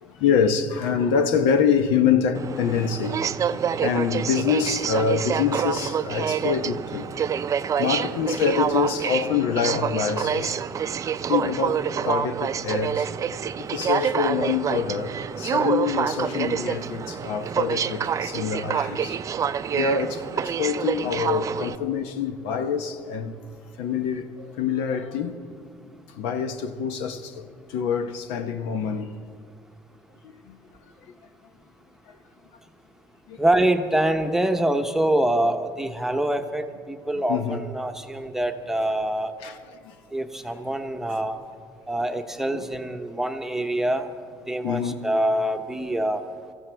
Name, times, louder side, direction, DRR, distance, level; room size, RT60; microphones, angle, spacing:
voice 1, 0.0-3.2 3.5-7.1 7.7-10.6 11.3-13.1 13.6-19.2 19.7-23.3 23.8-25.4 26.1-29.1 30.2-30.6 33.3-33.4 37.1-37.6 39.4-39.9 42.5-42.6 44.6-45.1, left 6 dB, 90° left, 0.9 m, -26 dB
Aircraft, 2.3-21.8, right 7 dB, 35° right, 0.4 m, -27 dB
voice 2, 33.4-39.3 40.1-41.4 41.9-44.1 44.5-46.2, right 1 dB, 5° right, 0.9 m, -25 dB
25.0 x 14.5 x 3.4 m
cardioid pair, 110°, 9 cm